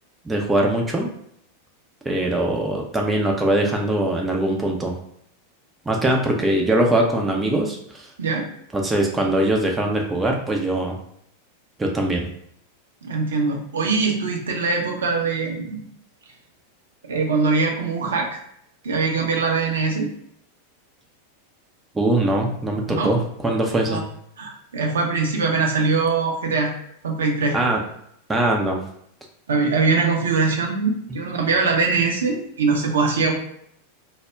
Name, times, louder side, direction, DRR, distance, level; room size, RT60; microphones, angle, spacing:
voice 1, 0.3-1.1 2.0-4.9 5.9-8.1 8.7-11.0 11.8-12.3 21.9-24.0 27.5-27.8 28.3-28.8, right 1 dB, 10° right, 1 dB, 0.4 m, -22 dB
voice 2, 13.0-15.8 17.0-18.4 18.8-20.1 22.9-23.1 23.9-24.0 24.4-26.7 27.0-27.6 29.5-33.3, right 4 dB, 65° right, 1 dB, 0.5 m, -22 dB
2.2 x 2.0 x 3.4 m, 0.71 s
figure-of-eight pair, 90°, 0 cm